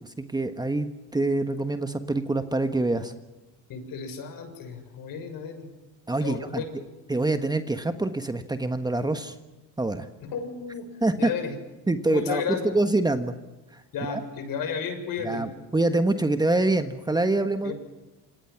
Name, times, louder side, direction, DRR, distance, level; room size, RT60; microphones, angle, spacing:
voice 1, 0.0-3.1 6.1-6.6 7.1-9.3 9.8-10.1 11.0-11.3 11.9-12.4 12.7-13.3 14.1-14.2 15.2-17.7, right 2 dB, 10° right, 8 dB, 1.4 m, -25 dB
voice 2, 3.7-5.7 6.2-6.7 10.2-10.9 11.2-11.6 12.1-12.7 13.9-15.4 17.6-17.7, left 6 dB, 60° left, 7 dB, 6.9 m, -33 dB
27.5 x 26.0 x 6.0 m, 1.1 s
cardioid pair, 115°, 37 cm